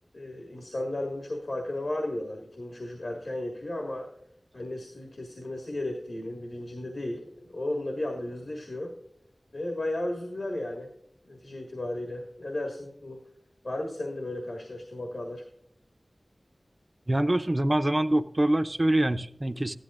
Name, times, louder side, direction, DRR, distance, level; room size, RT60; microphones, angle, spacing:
voice 1, 0.1-4.1 4.5-8.9 9.5-10.9 11.3-13.2 13.6-15.5, left 1 dB, 75° left, 1 dB, 1.8 m, -34 dB
voice 2, 17.1-19.7, right 1 dB, 30° right, 9 dB, 0.5 m, -25 dB
14.5 x 11.5 x 2.5 m, 0.72 s
wide cardioid pair, 65°, 0 cm